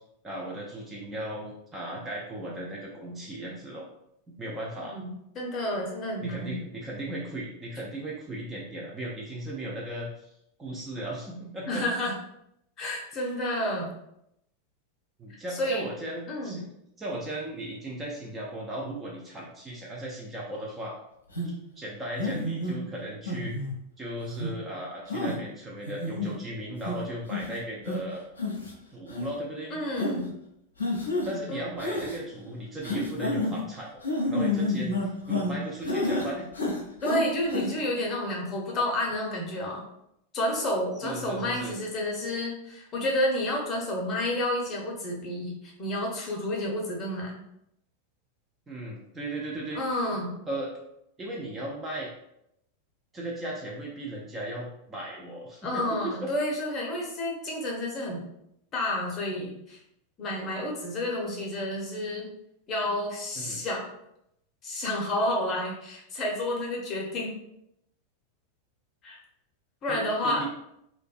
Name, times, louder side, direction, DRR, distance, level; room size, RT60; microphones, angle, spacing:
voice 1, 0.0-3.9 4.4-5.0 6.2-10.3 10.6-11.9 15.2-16.7 17.0-20.9 21.8-23.5 24.0-28.2 28.9-29.8 31.2-33.9 34.3-36.5 41.0-41.7 48.7-49.8 50.5-50.7 51.2-52.1 53.1-56.3 63.4-63.6 69.9-70.5, right 1 dB, 15° right, -3 dB, 0.4 m, -36 dB
voice 2, 4.9-6.6 11.7-12.2 12.8-13.9 15.5-15.9 16.3-16.6 29.7-30.3 31.5-31.6 37.0-39.8 40.3-47.3 49.7-50.4 55.6-58.2 58.7-59.8 60.2-62.3 62.7-63.9 64.6-67.4 69.0-69.2 69.8-70.5, left 1 dB, 30° left, -2 dB, 0.7 m, -30 dB
sound 1, 21.3-21.5 22.2-22.7 23.3-23.7 24.3-24.5 25.1-25.4 25.8-26.3 26.8-26.9 27.3-27.5 27.9-28.0 28.4-28.7 29.1-29.2 30.0-30.2 30.8-31.3 31.8-32.2 32.8-33.6 34.0-35.5 35.8-36.3 36.5-37.2 37.5-37.6, left 2 dB, 75° left, 0.5 m, -29 dB
2.5 x 2.1 x 2.3 m, 0.79 s
figure-of-eight pair, 90°, 0 cm